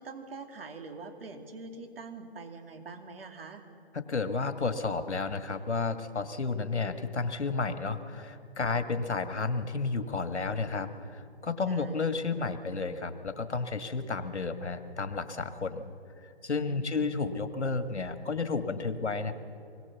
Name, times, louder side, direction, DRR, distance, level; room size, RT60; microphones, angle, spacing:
voice 1, 0.0-3.6 11.7-12.1 16.6-17.2, right 3 dB, 55° right, 5 dB, 2.6 m, -44 dB
voice 2, 3.9-15.9 16.2-19.3, left 4 dB, 85° left, 9 dB, 1.9 m, -32 dB
25.0 x 21.0 x 7.1 m, 2.8 s
hypercardioid pair, 155°, 33 cm